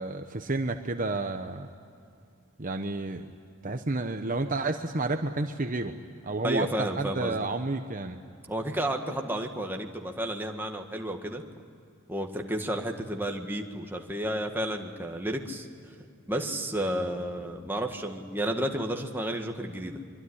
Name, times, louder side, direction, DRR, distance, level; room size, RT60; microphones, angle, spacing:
voice 1, 0.0-1.7 2.6-3.3 3.6-5.9 6.2-8.2, right 2 dB, 40° right, 6 dB, 1.0 m, -30 dB
voice 2, 6.4-7.4 8.5-11.4 12.1-15.7 16.3-20.0, right 1 dB, 10° right, 3 dB, 1.7 m, -31 dB
24.5 x 23.5 x 10.0 m, 2.4 s
head